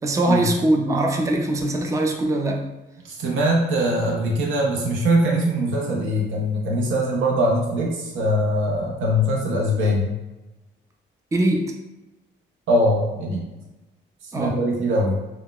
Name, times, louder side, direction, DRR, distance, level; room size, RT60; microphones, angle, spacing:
voice 1, 0.0-2.7 11.3-11.8 14.3-14.6, right 1 dB, 15° right, 2 dB, 0.4 m, -22 dB
voice 2, 3.0-10.1 12.7-13.5 14.2-15.2, equal, 75° right, -2 dB, 0.7 m, -22 dB
3.8 x 2.2 x 2.2 m, 1.1 s
cardioid pair, 90°, 20 cm